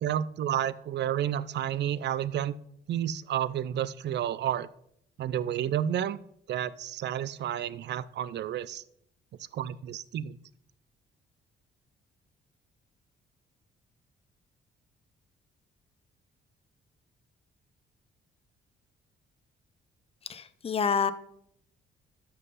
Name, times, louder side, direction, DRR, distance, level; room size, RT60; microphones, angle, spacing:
voice 1, 0.0-2.6 2.9-4.7 5.2-6.2 6.5-8.8 9.5-10.4, right 10 dB, 60° right, 18 dB, 0.5 m, -30 dB
voice 2, 20.2-21.1, left 6 dB, 30° left, 13 dB, 0.6 m, -28 dB
13.0 x 5.6 x 4.1 m, 0.74 s
cardioid pair, 90°, 20 cm